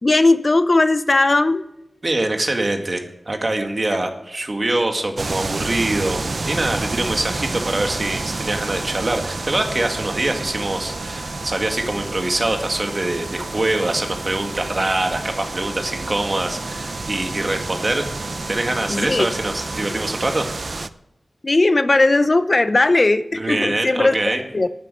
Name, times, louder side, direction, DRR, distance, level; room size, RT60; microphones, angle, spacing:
voice 1, 0.0-1.6 18.9-19.3 21.4-24.2 24.5-24.7, left 2 dB, 45° left, 12 dB, 0.6 m, -17 dB
voice 2, 2.0-6.2 6.5-18.0 18.5-20.5 23.3-24.4, right 2 dB, 45° right, 4 dB, 2.1 m, -24 dB
sound 1, 5.2-20.9, right 3 dB, 60° right, 0.6 m, -29 dB
sound 2, 6.4-19.7, left 2 dB, 90° left, 2.5 m, -42 dB
12.0 x 9.7 x 6.6 m, 0.85 s
wide cardioid pair, 55°, 0 cm